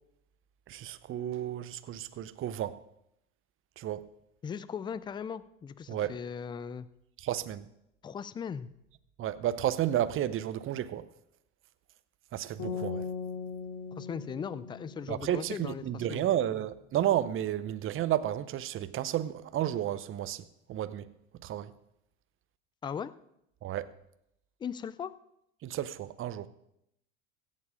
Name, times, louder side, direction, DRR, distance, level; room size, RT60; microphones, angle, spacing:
voice 1, 0.7-2.8 3.8-4.1 5.9-6.2 7.2-7.7 9.2-11.1 12.3-13.0 15.1-21.1 21.4-21.7 23.6-23.9 25.6-26.5, right 11 dB, 30° right, 0.7 m, -32 dB
voice 2, 4.4-6.9 8.0-8.7 13.9-16.2 22.8-23.1 24.6-25.1, left 7 dB, 10° left, 0.3 m, -38 dB
sound 1, 12.6-15.8, left 5 dB, 45° left, 3.1 m, -39 dB
16.5 x 7.6 x 5.0 m
hypercardioid pair, 90°, 41 cm